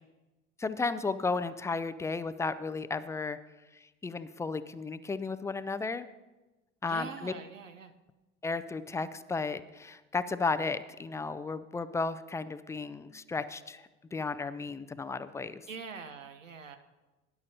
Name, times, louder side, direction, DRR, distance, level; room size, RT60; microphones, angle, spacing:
voice 1, 0.6-3.4 3.7-6.1 6.8-7.3 8.4-15.7, left 4 dB, 10° left, 13 dB, 0.4 m, -34 dB
voice 2, 6.8-7.9 15.7-16.8, right 5 dB, 80° right, 9 dB, 0.8 m, -43 dB
18.5 x 10.5 x 2.8 m, 1.1 s
figure-of-eight pair, 65°, 38 cm